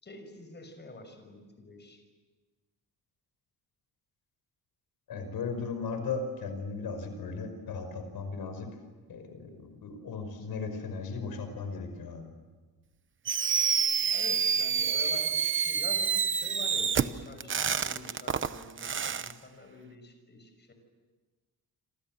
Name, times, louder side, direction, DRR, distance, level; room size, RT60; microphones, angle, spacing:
voice 1, 0.0-2.0 14.0-20.7, left 3 dB, 30° left, 6 dB, 6.1 m, -47 dB
voice 2, 5.1-8.7 9.1-12.3, left 4 dB, 70° left, 7 dB, 5.5 m, -36 dB
Fireworks, 13.3-19.3, right 7 dB, 35° right, 0.9 m, -28 dB
28.0 x 27.0 x 7.7 m, 1.4 s
cardioid pair, 150°, 37 cm